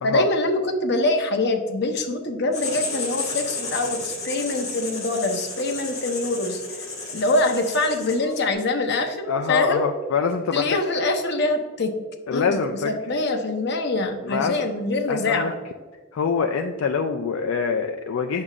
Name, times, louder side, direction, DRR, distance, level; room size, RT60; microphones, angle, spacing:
voice 1, 0.0-6.6 7.1-9.9 10.5-11.9 12.3-15.6, left 2 dB, 55° left, 5 dB, 0.8 m, -24 dB
Writing, 2.5-8.5, left 3 dB, 35° left, 1.7 m, -32 dB
voice 2, 9.3-10.8 12.3-12.9 14.2-14.6 15.1-15.5 16.1-18.4, left 5 dB, 90° left, 5 dB, 0.4 m, -24 dB
8.4 x 6.4 x 2.4 m, 1.4 s
head